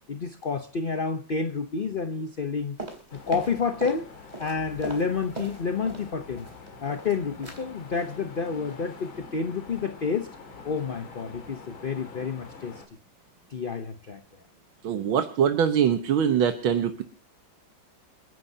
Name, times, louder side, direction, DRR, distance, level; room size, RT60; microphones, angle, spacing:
voice 1, 0.1-2.8 3.1-4.1 4.4-6.5 6.8-10.3 10.6-12.8 13.5-14.2, left 5 dB, 45° left, 0.7 m, -29 dB
sound 1, 2.8-4.0 4.3-6.1 6.4-7.1 7.4-7.6 7.9-8.1 8.5-8.7 9.0-9.1, right 2 dB, 20° right, 3.8 m, -39 dB
sound 2, 3.1-12.9, left 4 dB, 85° left, 3.3 m, -46 dB
voice 2, 14.8-17.0, right 8 dB, 90° right, 1.9 m, -23 dB
30.0 x 11.0 x 2.8 m
omnidirectional pair, 2.1 m